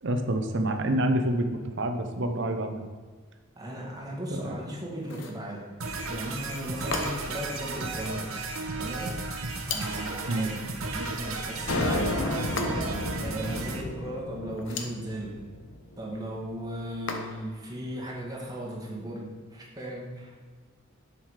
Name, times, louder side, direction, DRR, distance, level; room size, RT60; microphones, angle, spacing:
voice 1, 0.0-2.8 4.3-4.5 10.3-10.5, right 1 dB, 60° right, 7 dB, 0.9 m, -27 dB
voice 2, 3.6-5.7 6.1-8.3 8.8-9.2 9.7-15.4 16.0-20.6, right 1 dB, 20° right, -3 dB, 1.8 m, -36 dB
sound 1, 5.0-5.5 6.9-7.4 9.6-10.2 12.6-13.1 14.5-15.0 17.1-17.6, left 4 dB, 65° left, 1.0 m, -36 dB
sound 2, 5.8-13.8, right 3 dB, 85° right, 1.1 m, -34 dB
sound 3, 11.7-16.1, left 1 dB, 90° left, 0.8 m, -32 dB
7.3 x 7.1 x 4.8 m, 1.5 s
head